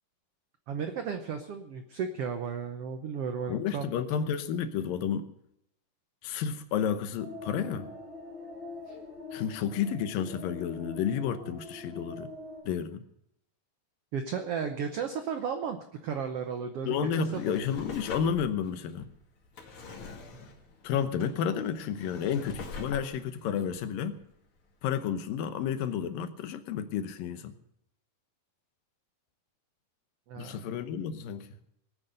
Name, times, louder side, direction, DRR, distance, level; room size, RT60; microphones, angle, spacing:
voice 1, 0.7-3.9 8.9-9.0 14.1-17.4 30.3-30.6, right 6 dB, 85° right, 7 dB, 1.3 m, -34 dB
voice 2, 3.5-5.2 6.2-7.9 9.3-12.3 12.6-13.0 16.8-19.1 20.8-24.2 24.8-27.5 30.4-31.5, left 8 dB, 80° left, 10 dB, 2.7 m, -31 dB
sound 1, 7.2-12.6, left 3 dB, 55° right, 8.5 m, -43 dB
Drawer open or close, 17.0-24.7 25.2-25.3, left 3 dB, 45° left, 2.6 m, -45 dB
18.5 x 9.2 x 6.6 m, 0.76 s
omnidirectional pair, 4.0 m